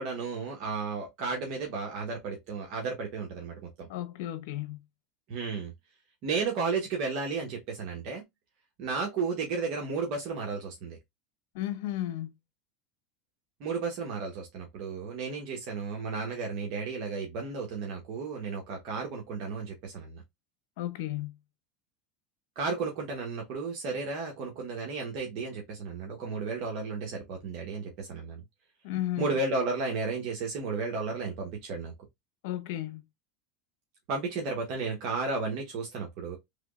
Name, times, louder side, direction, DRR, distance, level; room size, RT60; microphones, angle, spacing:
voice 1, 0.0-3.9 5.3-5.7 6.2-8.2 8.8-11.0 13.6-20.2 22.6-28.4 29.2-31.9 34.1-36.4, right 4 dB, 55° right, 1.1 m, -33 dB
voice 2, 3.9-4.8 11.5-12.3 20.8-21.4 28.8-29.3 32.4-33.0, left 14 dB, 75° left, 0.7 m, -34 dB
3.4 x 3.1 x 2.4 m
supercardioid pair, 130°, 0 cm